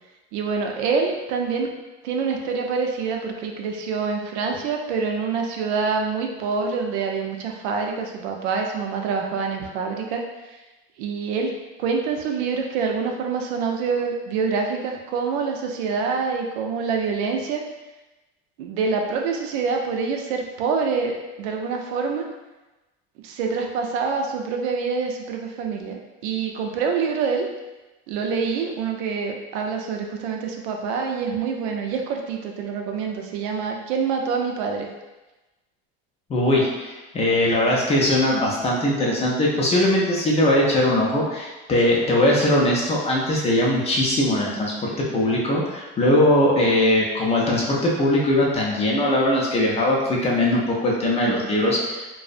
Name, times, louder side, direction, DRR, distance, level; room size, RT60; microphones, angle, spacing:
voice 1, 0.3-1.7 2.0-10.2 11.0-11.5 11.8-17.6 18.6-22.3 23.2-27.5 28.1-34.9, right 5 dB, 85° right, 2 dB, 0.5 m, -26 dB
voice 2, 36.3-52.0, left 1 dB, 20° left, -3 dB, 0.3 m, -20 dB
2.5 x 2.0 x 2.4 m, 1.1 s
supercardioid pair, 125°, 33 cm